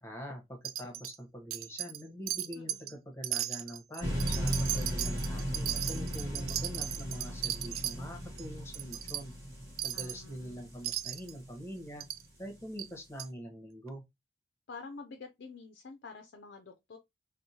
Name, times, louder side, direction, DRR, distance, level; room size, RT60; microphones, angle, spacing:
voice 1, 0.0-9.3 9.8-12.1 12.4-14.0, equal, 10° left, 0.9 m, -44 dB
Wind chime, 0.6-1.2 1.5-2.0 2.3-2.9 3.2-8.0 8.4-8.5 8.7-9.2 9.8-10.2 10.8-11.3 12.0-12.2 12.8-12.9 13.2-13.3, right 13 dB, 90° right, 0.4 m, -36 dB
voice 2, 2.5-3.0 9.9-10.7 14.7-17.0, left 4 dB, 55° left, 0.4 m, -48 dB
sound 1, 4.0-12.1, equal, 15° right, 1.3 m, -37 dB
4.5 x 2.1 x 2.7 m
head